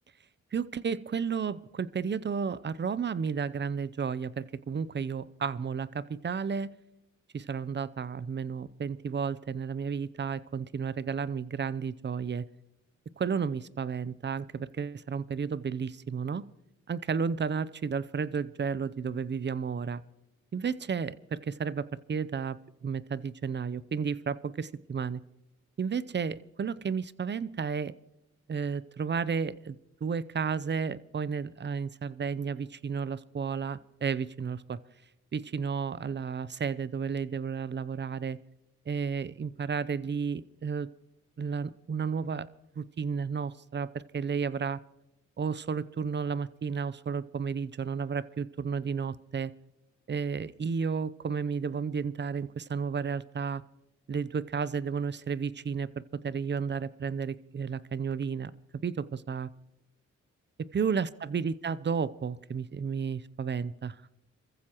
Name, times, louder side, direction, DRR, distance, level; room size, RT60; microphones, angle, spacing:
voice 1, 0.5-6.7 7.3-12.4 13.2-16.4 16.9-20.0 20.5-25.2 25.8-27.9 28.5-29.8 30.0-34.8 35.3-38.4 38.9-40.9 41.4-42.5 42.8-44.8 45.4-49.5 50.1-53.6 54.1-55.9 56.2-58.5 58.8-59.5 60.6-64.0, right 6 dB, 40° right, 18 dB, 0.6 m, -32 dB
26.5 x 15.0 x 3.0 m, 0.90 s
cardioid pair, 60°, 29 cm